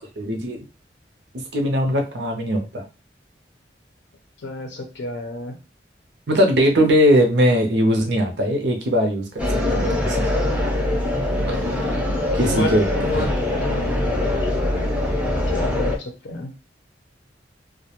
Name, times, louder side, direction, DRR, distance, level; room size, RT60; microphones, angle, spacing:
voice 1, 0.2-0.6 1.5-2.8 6.3-10.4 11.5-11.9 12.3-12.9, equal, 75° right, 2 dB, 0.6 m, -20 dB
voice 2, 4.4-5.6 11.3-11.9 12.4-14.4 15.5-16.5, left 2 dB, 80° left, 1 dB, 0.5 m, -31 dB
sound 1, 9.4-16.0, left 1 dB, 5° right, 0.5 m, -23 dB
2.3 x 2.1 x 2.8 m, 0.30 s
head